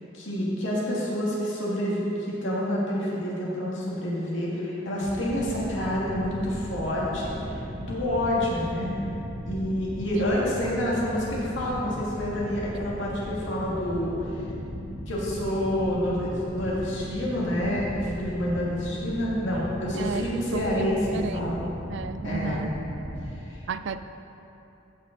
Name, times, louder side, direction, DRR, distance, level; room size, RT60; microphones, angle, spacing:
voice 1, 0.1-8.9 9.5-14.4 15.1-21.6 22.2-22.6 23.3-23.6, left 1 dB, 65° left, -6 dB, 2.3 m, -28 dB
sound 1, 5.0-23.3, equal, 40° right, 1.6 m, -37 dB
voice 2, 19.9-22.7 23.7-24.0, right 5 dB, 60° right, 11 dB, 0.4 m, -33 dB
15.0 x 5.5 x 3.9 m, 3.0 s
head